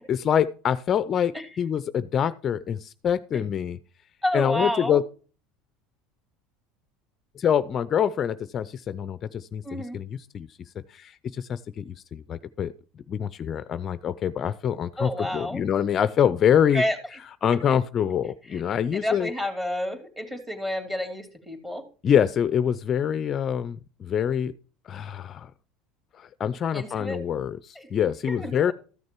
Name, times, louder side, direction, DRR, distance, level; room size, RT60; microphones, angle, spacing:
voice 1, 0.1-3.8 4.3-5.0 7.4-9.6 9.9-10.5 10.9-12.7 13.1-16.8 17.4-19.3 22.0-24.5 24.9-25.5 26.1-28.7, left 8 dB, 40° left, 15 dB, 0.4 m, -25 dB
voice 2, 4.2-5.0 9.6-10.0 15.0-15.6 16.7-17.0 18.5-18.6 18.9-21.8 26.7-27.2 27.8-27.9 28.3-28.7, left 1 dB, 10° right, 5 dB, 2.7 m, -29 dB
13.5 x 6.4 x 4.5 m, 0.39 s
supercardioid pair, 100°, 0 cm